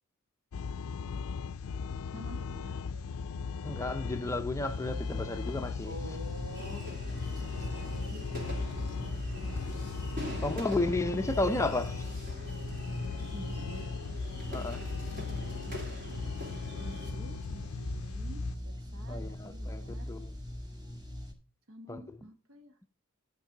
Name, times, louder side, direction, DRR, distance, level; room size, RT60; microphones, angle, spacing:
sound 1, 0.5-18.6, left 5 dB, 80° left, 0.4 m, -38 dB
voice 1, 2.1-3.1 5.8-6.8 7.3-9.6 9.8-10.4 10.9-11.3 13.3-13.9 15.6-16.3 16.7-18.4 18.6-20.1 21.7-22.8, right 1 dB, 80° right, 1.3 m, -49 dB
voice 2, 3.6-5.9 10.4-12.0 14.5-14.8 19.1-20.3 21.9-22.0, left 2 dB, 15° left, 0.4 m, -32 dB
sound 2, 4.6-21.3, left 1 dB, 20° right, 1.5 m, -40 dB
sound 3, 6.5-17.1, left 1 dB, 45° right, 2.9 m, -44 dB
11.0 x 5.3 x 3.8 m
head